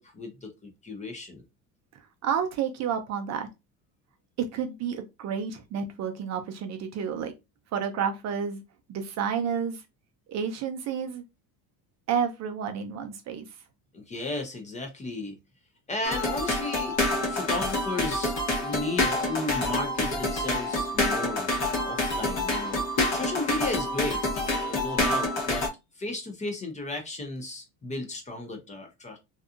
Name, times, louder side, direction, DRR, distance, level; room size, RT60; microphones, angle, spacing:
voice 1, 0.0-1.4 13.9-15.4 15.9-17.0 17.3-21.5 21.8-25.7 26.0-29.2, left 2 dB, 20° left, 0.5 m, -34 dB
voice 2, 2.2-3.5 4.4-7.3 7.7-8.6 8.9-9.8 10.3-11.2 12.1-13.5, right 7 dB, 45° right, 0.5 m, -30 dB
sound 1, 16.0-25.7, left 1 dB, 40° left, 1.0 m, -27 dB
2.7 x 2.3 x 2.4 m
cardioid pair, 125°, 40 cm